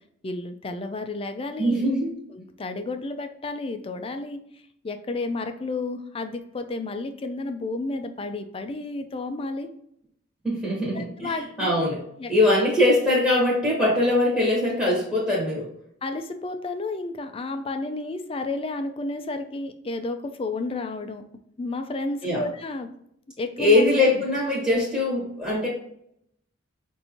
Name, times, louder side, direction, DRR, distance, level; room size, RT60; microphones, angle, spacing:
voice 1, 0.2-1.9 2.3-4.4 4.8-9.7 10.9-11.8 12.2-12.3 16.0-21.2 21.6-22.9 23.4-24.0, left 2 dB, 30° left, 7 dB, 0.4 m, -31 dB
voice 2, 1.6-2.1 10.4-12.0 12.3-15.7 22.2-22.4 23.6-25.7, left 1 dB, 10° right, -6 dB, 1.3 m, -22 dB
5.7 x 2.6 x 2.9 m, 0.70 s
head